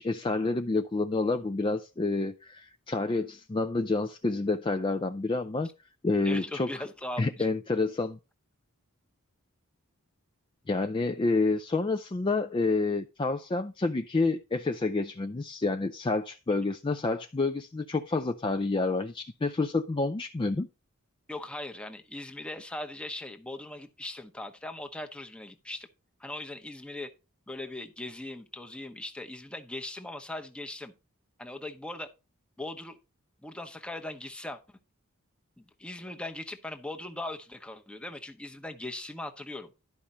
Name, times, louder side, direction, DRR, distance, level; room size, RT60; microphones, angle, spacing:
voice 1, 0.0-5.7 6.0-6.7 7.2-8.2 10.7-20.7, left 3 dB, 20° left, 0.4 m, -28 dB
voice 2, 6.2-7.5 21.3-25.9 26.2-27.1 27.5-30.9 31.4-32.1 32.6-33.0 33.4-34.6 35.6-39.7, left 1 dB, 5° left, 0.8 m, -39 dB
12.0 x 5.0 x 4.2 m
head